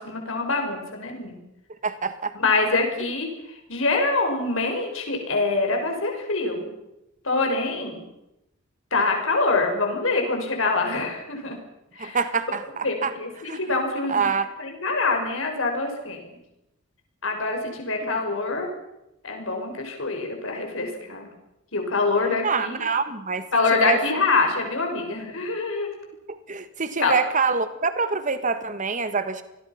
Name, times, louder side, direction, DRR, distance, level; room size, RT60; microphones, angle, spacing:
voice 1, 0.0-1.4 2.3-6.7 7.2-8.0 8.9-11.6 12.0-12.2 12.8-14.3 14.6-16.4 17.2-18.7 19.2-21.3 21.7-22.8 23.5-25.9 27.0-27.1, left 3 dB, 70° left, 3 dB, 5.7 m, -25 dB
voice 2, 1.8-2.3 12.0-13.1 13.4-13.6 14.1-14.5 22.4-23.5 23.8-24.0 26.3-29.4, right 4 dB, 40° right, 11 dB, 1.6 m, -25 dB
28.0 x 21.0 x 5.9 m, 0.89 s
head